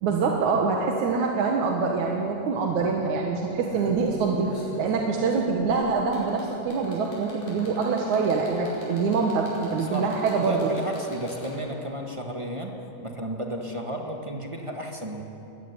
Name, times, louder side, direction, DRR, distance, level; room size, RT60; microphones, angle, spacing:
voice 1, 0.0-4.5 4.8-10.7, right 4 dB, 70° right, 0 dB, 2.8 m, -25 dB
sound 1, 2.2-2.3 2.6-2.8 3.4-11.8 13.0-13.1, equal, 85° left, 7.0 m, -45 dB
voice 2, 10.4-12.7 13.0-15.2, equal, 25° right, 1 dB, 0.6 m, -33 dB
21.5 x 16.0 x 9.7 m, 3.0 s
omnidirectional pair, 3.6 m